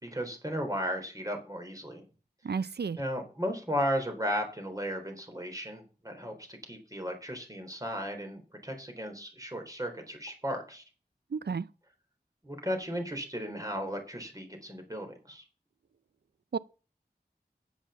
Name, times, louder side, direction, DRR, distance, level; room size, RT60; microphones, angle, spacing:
voice 1, 0.0-2.1 2.5-2.6 3.0-10.8 12.4-15.4, equal, 20° right, 3.8 m, -35 dB
voice 2, 2.4-3.0 11.3-11.7 16.5-16.6, right 5 dB, 85° right, 0.5 m, -31 dB
9.3 x 7.4 x 7.0 m
wide cardioid pair, 50°, 17 cm